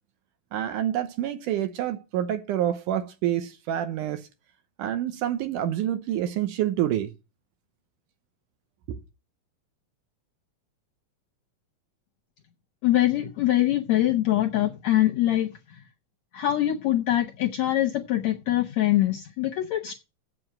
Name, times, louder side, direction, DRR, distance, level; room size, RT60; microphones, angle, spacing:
voice 1, 0.5-4.3 4.8-7.1 8.9-9.0, right 11 dB, 75° right, 2.2 m, -27 dB
voice 2, 12.8-15.8 16.3-19.9, left 14 dB, 75° left, 1.6 m, -24 dB
7.9 x 7.9 x 7.6 m
omnidirectional pair, 4.2 m